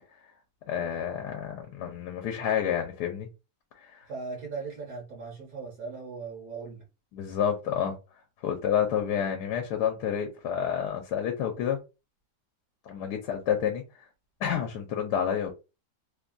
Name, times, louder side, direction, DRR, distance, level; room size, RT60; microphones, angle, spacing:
voice 1, 0.7-3.3 3.8-4.0 7.1-8.0 8.4-11.8 12.9-13.8 14.4-15.5, left 8 dB, 85° left, 1.2 m, -29 dB
voice 2, 4.1-6.9, right 4 dB, 65° right, 1.3 m, -38 dB
3.1 x 2.2 x 2.5 m
omnidirectional pair, 1.8 m